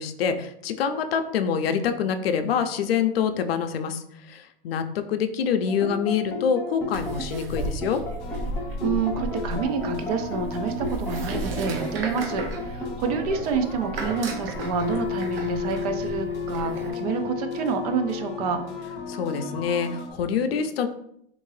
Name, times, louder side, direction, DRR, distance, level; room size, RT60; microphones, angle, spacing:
voice 1, 0.0-8.0 19.1-20.9, left 7 dB, 85° left, 8 dB, 0.5 m, -26 dB
sound 1, 5.7-19.6, left 5 dB, 10° left, 0.5 m, -33 dB
sound 2, 6.9-16.9, right 2 dB, 80° right, 0.8 m, -34 dB
sound 3, 8.2-20.1, left 1 dB, 45° left, 0.7 m, -39 dB
voice 2, 8.8-18.6, right 5 dB, 40° right, 7 dB, 0.4 m, -28 dB
3.6 x 2.6 x 3.1 m, 0.75 s
supercardioid pair, 150°, 29 cm